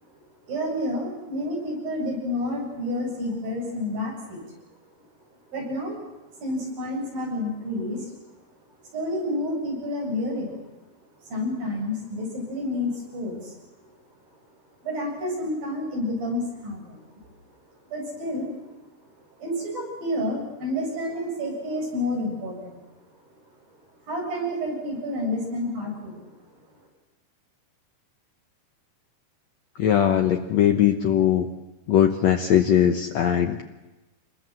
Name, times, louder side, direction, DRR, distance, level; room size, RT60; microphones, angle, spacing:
voice 1, 0.5-4.4 5.5-5.9 6.4-8.1 8.9-10.7 11.3-13.5 14.8-17.3 17.8-18.5 19.4-22.8 24.1-26.3, left 1 dB, 60° right, -1 dB, 9.5 m, -29 dB
voice 2, 29.8-31.5 31.9-33.6, left 10 dB, 90° left, 5 dB, 1.5 m, -20 dB
26.5 x 21.5 x 7.7 m, 1.1 s
omnidirectional pair, 4.7 m